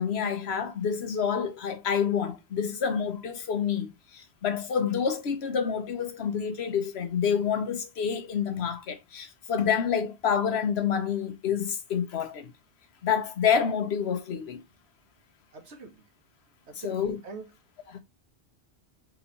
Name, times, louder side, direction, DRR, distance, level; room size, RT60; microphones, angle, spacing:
voice 1, 0.0-12.5 13.0-14.6 16.8-17.2 17.9-18.0, left 7 dB, 75° left, 1.1 m, -28 dB
voice 2, 15.5-16.0 16.7-17.5, right 4 dB, 85° right, 1.4 m, -44 dB
4.6 x 3.9 x 2.8 m
omnidirectional pair, 1.1 m